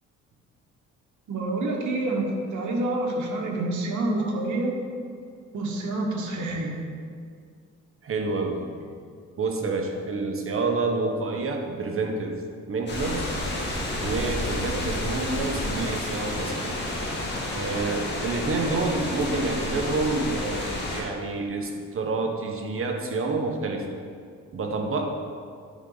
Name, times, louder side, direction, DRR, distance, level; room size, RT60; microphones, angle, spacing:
voice 1, 1.3-4.8 5.5-6.7, right 2 dB, 75° right, 1 dB, 1.5 m, -27 dB
voice 2, 8.0-8.6 9.4-12.3 12.7-13.3 14.0-16.8 17.5-23.9 24.5-25.0, right 3 dB, 45° right, 2 dB, 1.3 m, -28 dB
sound 1, 12.9-21.0, left 1 dB, 35° left, 2.1 m, -30 dB
9.8 x 5.1 x 4.0 m, 2.2 s
cardioid pair, 90°, 30 cm